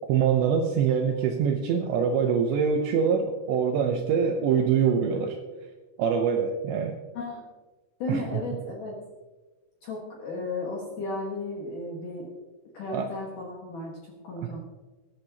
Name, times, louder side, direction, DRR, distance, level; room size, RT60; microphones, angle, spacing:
voice 1, 0.1-5.4 6.0-7.0 8.1-8.2 12.9-13.1, right 7 dB, 80° right, 3 dB, 2.6 m, -24 dB
voice 2, 7.1-7.5 8.0-9.0 9.8-12.3 12.7-14.6, left 2 dB, 65° left, -2 dB, 2.1 m, -34 dB
19.5 x 11.0 x 2.9 m, 1.2 s
omnidirectional pair, 6.0 m